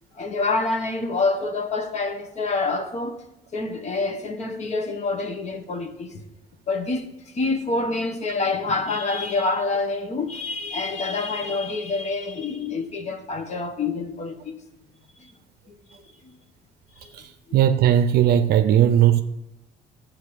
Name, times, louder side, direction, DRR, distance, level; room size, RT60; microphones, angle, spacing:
voice 1, 0.1-3.2 3.5-6.2 6.7-7.1 7.3-14.6 15.2-15.3 15.7-15.8 16.2-16.4 17.0-17.3, left 3 dB, 40° left, 1.2 m, -27 dB
voice 2, 17.5-19.2, right 10 dB, 70° right, 0.5 m, -17 dB
11.0 x 7.6 x 4.8 m
cardioid pair, 110°, 17 cm